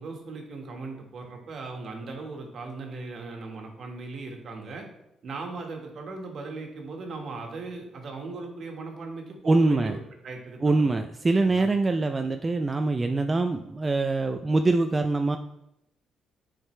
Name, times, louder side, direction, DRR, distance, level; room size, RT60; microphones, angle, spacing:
voice 1, 0.0-4.8 5.2-10.8 11.3-11.7, right 3 dB, 60° right, 2 dB, 1.5 m, -38 dB
voice 2, 9.5-10.0 10.6-15.4, right 3 dB, 25° right, 6 dB, 0.4 m, -24 dB
7.6 x 4.9 x 3.3 m, 0.87 s
cardioid pair, 90°, 0 cm